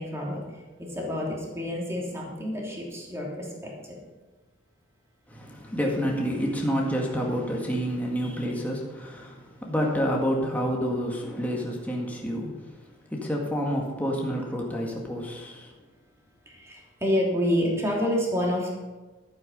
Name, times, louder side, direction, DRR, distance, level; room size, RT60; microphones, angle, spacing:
voice 1, 0.0-4.0 16.5-18.7, equal, 15° right, -3 dB, 3.1 m, -29 dB
voice 2, 5.3-15.7, equal, 10° left, -2 dB, 1.9 m, -29 dB
12.5 x 9.1 x 5.5 m, 1.2 s
head